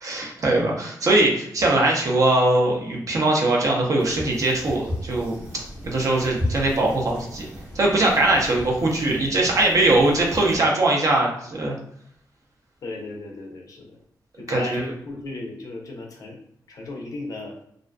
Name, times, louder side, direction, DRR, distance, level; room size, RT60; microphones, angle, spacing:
voice 1, 0.0-5.3 5.8-7.4 7.7-11.8 14.5-14.8, right 2 dB, 50° right, -1 dB, 0.6 m, -21 dB
sound 1, 4.0-10.6, left 1 dB, 15° right, 0.8 m, -35 dB
voice 2, 12.8-14.0 14.4-16.4 16.7-17.6, left 2 dB, 55° left, 1 dB, 0.5 m, -35 dB
2.4 x 2.4 x 2.2 m, 0.70 s
wide cardioid pair, 135°, 7 cm